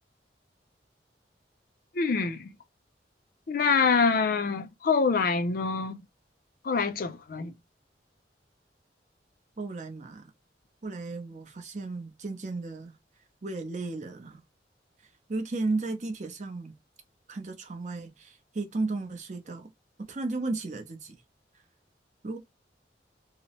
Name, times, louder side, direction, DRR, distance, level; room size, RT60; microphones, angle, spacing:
voice 1, 1.9-2.5 3.5-6.0 6.6-7.5, left 5 dB, 55° left, 0.4 m, -25 dB
voice 2, 9.6-10.3 10.8-13.0 13.4-14.4 15.3-16.7 17.3-19.7 20.1-21.2 22.2-22.4, right 3 dB, 40° right, 0.6 m, -34 dB
2.9 x 2.0 x 2.8 m
head